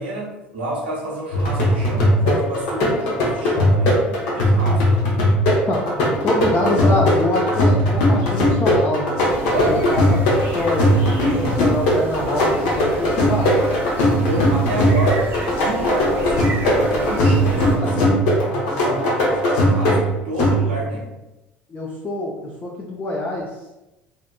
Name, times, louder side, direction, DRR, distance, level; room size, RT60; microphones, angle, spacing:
voice 1, 0.0-4.8 9.4-10.5 14.2-17.9 18.4-20.0 20.2-21.1, right 1 dB, 85° right, -4 dB, 0.7 m, -29 dB
sound 1, 1.3-21.0, equal, 70° left, 0.7 m, -19 dB
voice 2, 5.7-9.1 9.7-11.0 11.4-13.7 17.7-17.9 18.9-19.0 21.7-23.5, left 1 dB, 30° left, -3 dB, 0.5 m, -25 dB
sound 2, 9.3-17.8, right 1 dB, 45° right, 0.7 m, -31 dB
2.7 x 2.4 x 2.2 m, 0.98 s
hypercardioid pair, 65°, 5 cm